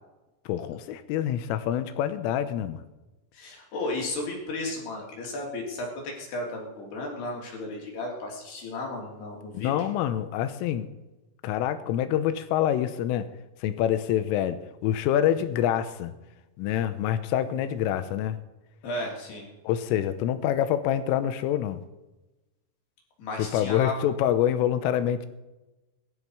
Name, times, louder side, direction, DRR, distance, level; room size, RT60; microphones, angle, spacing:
voice 1, 0.5-2.8 9.6-10.9 11.4-13.3 13.6-16.2 16.6-18.4 19.7-21.8 23.4-25.3, left 10 dB, 90° left, 11 dB, 3.5 m, -26 dB
voice 2, 3.3-9.7 18.8-19.5 23.2-23.9, left 2 dB, 55° left, -1 dB, 4.9 m, -34 dB
21.5 x 12.5 x 4.8 m, 1.1 s
omnidirectional pair, 5.7 m